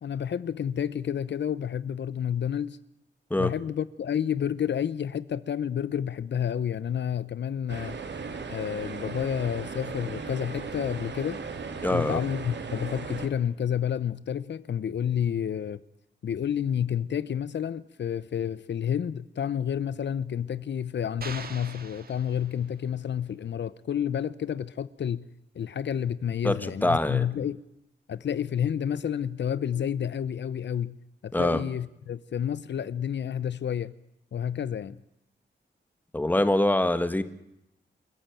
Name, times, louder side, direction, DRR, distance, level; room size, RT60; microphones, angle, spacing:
voice 1, 0.0-2.8 3.4-8.0 8.5-11.4 11.9-15.8 16.2-25.3 25.5-27.6 28.1-31.0 31.2-33.9 34.3-35.0, left 9 dB, 75° left, 0.8 m, -30 dB
sound 1, 7.7-13.3, right 5 dB, 70° right, 3.1 m, -37 dB
voice 2, 11.8-12.2 26.4-27.3 31.3-31.6 36.1-37.2, left 1 dB, 10° left, 1.6 m, -24 dB
sound 2, 21.2-22.9, right 5 dB, 55° right, 2.2 m, -42 dB
28.0 x 14.5 x 9.2 m
wide cardioid pair, 140°, 19 cm